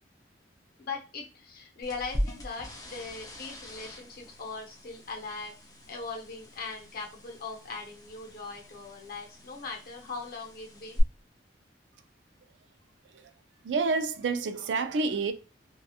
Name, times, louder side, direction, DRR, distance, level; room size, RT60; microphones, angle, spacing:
voice 1, 0.8-5.5 5.9-11.0, left 4 dB, 55° left, 0.7 m, -40 dB
sound 1, 1.8-11.0, equal, 20° left, 0.5 m, -41 dB
voice 2, 13.6-15.3, right 4 dB, 75° right, 0.4 m, -28 dB
2.7 x 2.3 x 2.3 m
head